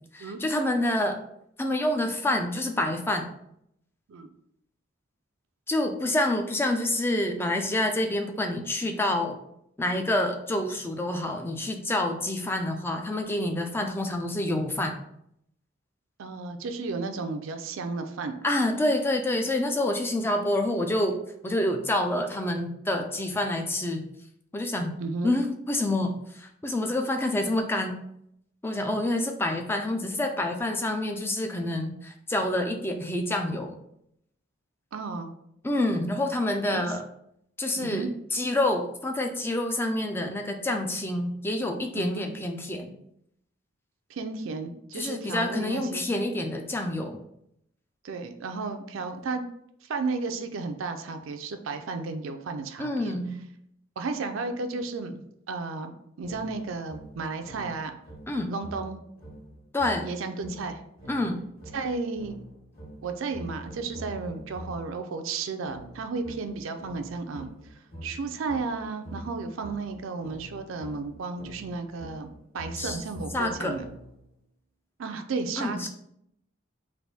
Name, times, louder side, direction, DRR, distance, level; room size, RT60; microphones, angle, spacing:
voice 1, 0.1-1.2 1.6-3.3 5.7-9.4 9.8-15.0 18.4-21.2 21.4-24.1 24.5-24.9 25.2-28.0 28.6-33.8 35.6-37.0 37.6-38.1 38.3-43.0 44.9-47.2 52.8-53.4 58.3-58.5 59.7-60.1 61.1-61.4 72.8-73.0 73.3-73.8 75.6-75.9, left 1 dB, 10° left, 5 dB, 0.3 m, -27 dB
voice 2, 16.2-18.3 25.0-25.3 34.9-35.3 36.7-36.8 37.8-38.1 41.9-42.3 44.1-46.0 48.0-49.4 49.9-53.1 54.0-55.2 55.5-55.9 56.2-57.9 58.5-59.0 60.0-60.8 61.7-62.3 63.0-67.5 68.0-72.3 72.5-73.9 75.0-75.9, right 4 dB, 70° right, 7 dB, 0.4 m, -33 dB
sound 1, 56.2-65.0 65.6-74.3, right 1 dB, 40° left, 1.5 m, -45 dB
3.4 x 2.6 x 4.0 m, 0.75 s
head